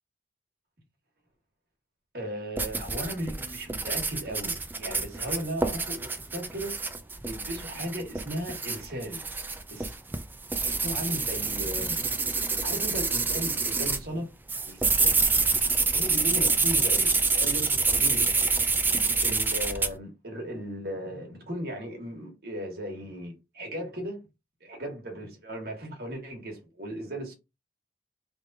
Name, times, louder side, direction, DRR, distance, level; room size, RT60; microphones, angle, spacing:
voice 1, 2.1-6.8 7.2-9.2 9.7-9.9 10.8-12.0 12.6-14.3 14.5-15.1 15.9-18.4 19.2-24.2 24.6-27.3, equal, 60° right, 1.6 m, -36 dB
sound 1, 2.6-14.0 14.5-19.9, right 4 dB, 10° right, 0.3 m, -27 dB
3.4 x 2.6 x 4.0 m
head